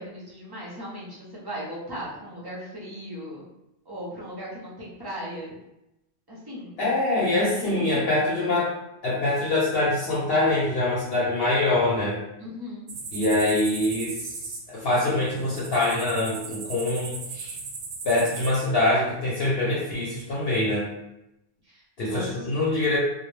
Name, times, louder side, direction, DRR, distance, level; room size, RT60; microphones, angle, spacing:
voice 1, 0.0-3.5 3.9-5.6 6.3-6.8 7.5-8.1 12.4-12.9 21.6-22.7, equal, 30° right, -6 dB, 0.5 m, -38 dB
voice 2, 6.8-8.7 9.0-12.2 13.1-17.5 18.0-20.9 22.0-23.0, left 2 dB, 60° left, -6 dB, 0.8 m, -24 dB
sound 1, 12.9-18.5, right 4 dB, 85° right, 0.9 m, -37 dB
2.2 x 2.0 x 3.1 m, 0.88 s
omnidirectional pair, 1.2 m